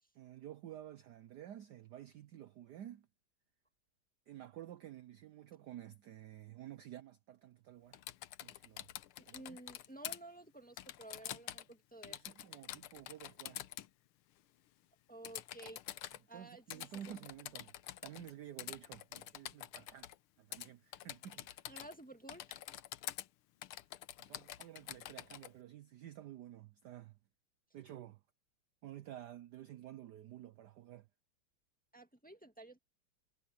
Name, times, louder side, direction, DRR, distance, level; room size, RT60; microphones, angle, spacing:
voice 1, 0.1-3.1 4.3-8.0 8.4-8.9 9.3-9.6 12.1-13.6 16.3-17.7 18.0-20.1 20.4-21.7 24.2-27.2 27.7-28.2 28.8-31.1, right 11 dB, 65° right, 1.1 m, -51 dB
Typing, 7.9-10.2 10.8-11.7 12.0-13.9 15.2-16.2 16.7-18.3 18.6-20.2 20.5-20.7 20.9-22.0 22.3-23.3 23.6-25.5, left 13 dB, 85° left, 1.7 m, -47 dB
voice 2, 9.3-12.2 15.1-15.8 16.3-17.2 21.7-22.6 31.9-32.8, right 2 dB, 5° left, 1.6 m, -53 dB
omnidirectional pair, 2.3 m